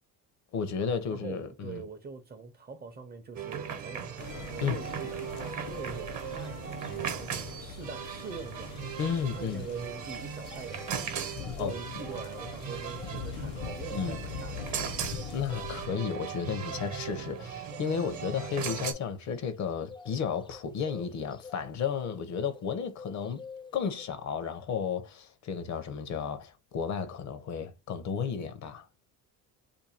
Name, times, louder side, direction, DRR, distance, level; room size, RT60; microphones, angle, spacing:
voice 1, 0.5-1.8 4.6-4.8 9.0-9.6 11.6-11.8 13.9-14.2 15.3-23.4 23.7-28.9, left 7 dB, 55° left, 0.6 m, -33 dB
voice 2, 1.1-11.3 11.5-14.9, right 5 dB, 30° right, 0.6 m, -44 dB
sound 1, 3.4-18.9, right 8 dB, 55° right, 0.9 m, -38 dB
sound 2, 4.2-15.9, left 6 dB, 75° left, 0.9 m, -43 dB
sound 3, 4.7-5.0 5.3-6.9 7.3-7.4 7.7-22.7 23.0-24.1, left 5 dB, 15° left, 0.3 m, -50 dB
2.6 x 2.6 x 4.1 m
cardioid pair, 125°, 34 cm